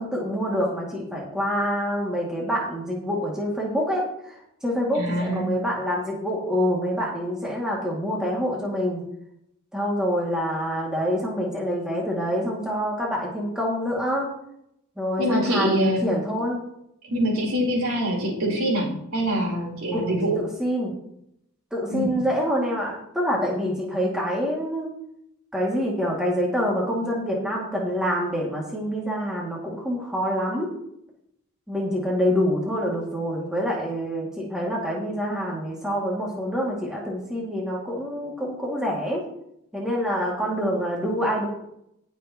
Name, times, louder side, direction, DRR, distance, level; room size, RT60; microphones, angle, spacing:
voice 1, 0.0-4.1 4.6-9.0 9.7-14.3 15.0-16.6 19.9-20.9 21.7-24.9 25.5-30.7 31.7-39.2 39.7-41.5, equal, 5° right, -4 dB, 2.3 m, -26 dB
voice 2, 4.9-5.5 15.2-16.0 17.0-20.4 21.9-22.1, right 1 dB, 75° right, -1 dB, 4.1 m, -24 dB
18.5 x 6.8 x 3.0 m, 0.75 s
head